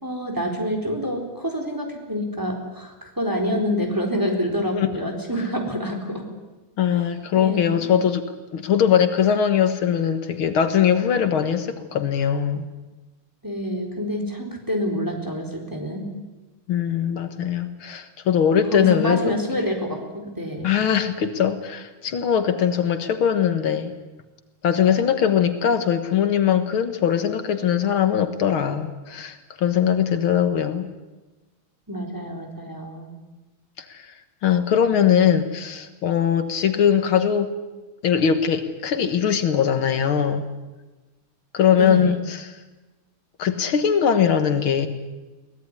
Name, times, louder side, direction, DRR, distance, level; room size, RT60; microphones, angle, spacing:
voice 1, 0.0-6.3 7.4-7.9 13.4-16.1 18.7-20.7 31.9-33.1 41.8-42.2, equal, 10° right, 2 dB, 3.9 m, -27 dB
voice 2, 4.7-5.1 6.8-8.2 8.5-12.6 16.7-19.7 20.6-23.9 24.6-30.9 33.8-34.1 34.4-37.5 38.0-40.4 41.5-42.6 43.4-44.9, left 8 dB, 80° left, 8 dB, 2.3 m, -21 dB
23.0 x 18.5 x 9.8 m, 1.1 s
omnidirectional pair, 2.3 m